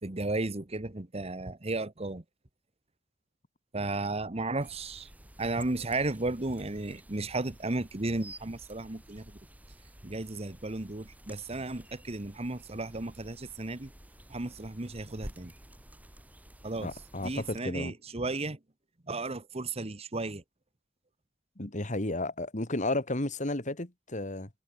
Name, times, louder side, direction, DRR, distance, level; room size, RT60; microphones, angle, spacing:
voice 1, 0.0-2.2 3.7-5.1 5.4-9.3 10.0-13.9 14.3-15.5 16.6-16.9 17.2-18.6 19.1-20.4, right 2 dB, 35° right, 1.2 m, -34 dB
sound 1, 4.6-17.6, right 1 dB, 10° right, 2.6 m, -52 dB
voice 2, 16.8-17.9 21.6-24.5, left 2 dB, 40° left, 2.5 m, -33 dB
head